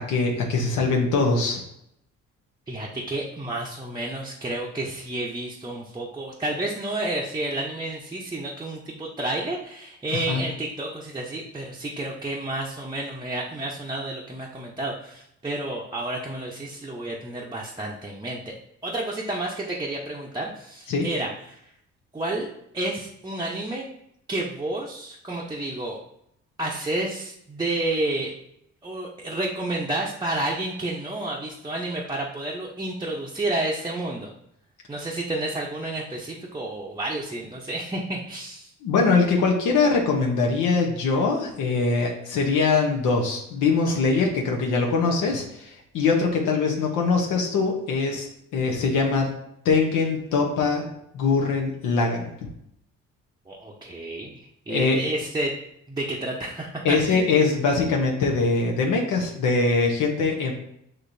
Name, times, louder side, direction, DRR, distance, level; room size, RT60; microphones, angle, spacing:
voice 1, 0.0-1.6 10.3-10.4 20.9-21.1 38.8-48.3 48.5-49.3 49.6-50.9 51.1-52.3 54.7-55.0 56.8-60.5, left 4 dB, 85° left, 0 dB, 0.8 m, -22 dB
voice 2, 2.7-18.4 18.8-21.6 22.1-22.5 22.7-23.9 24.3-26.0 26.6-28.3 28.8-34.3 34.9-38.7 43.9-44.2 53.5-55.5 55.9-57.3, right 2 dB, 15° right, -4 dB, 0.6 m, -30 dB
6.4 x 3.0 x 2.6 m, 0.76 s
cardioid pair, 90°, 30 cm